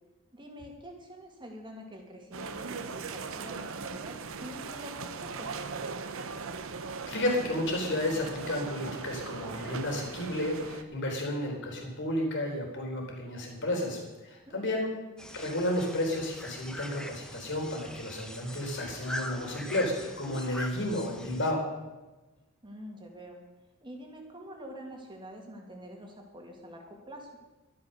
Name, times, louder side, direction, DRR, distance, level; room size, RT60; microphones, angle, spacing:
voice 1, 0.3-5.6 14.5-14.8 22.6-23.4 23.8-27.3, equal, 20° right, 1 dB, 2.4 m, -46 dB
sound 1, 2.3-10.8, right 4 dB, 65° right, 0.9 m, -39 dB
voice 2, 7.1-14.9 15.3-21.6, left 1 dB, 55° left, 1 dB, 3.8 m, -32 dB
sound 2, 15.2-21.5, left 1 dB, 5° left, 1.1 m, -42 dB
12.5 x 11.5 x 6.6 m, 1.1 s
head